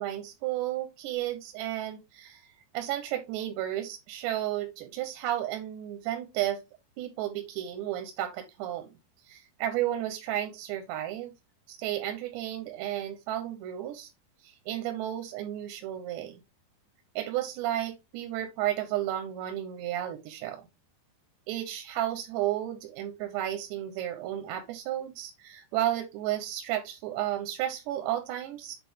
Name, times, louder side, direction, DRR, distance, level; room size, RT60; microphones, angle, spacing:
voice 1, 0.0-2.4 2.7-6.6 7.0-8.9 9.3-11.3 11.7-14.1 14.4-16.4 17.2-20.6 21.5-28.8, right 13 dB, 85° right, 6 dB, 3.0 m, -33 dB
8.2 x 4.0 x 3.4 m, 0.24 s
omnidirectional pair, 4.9 m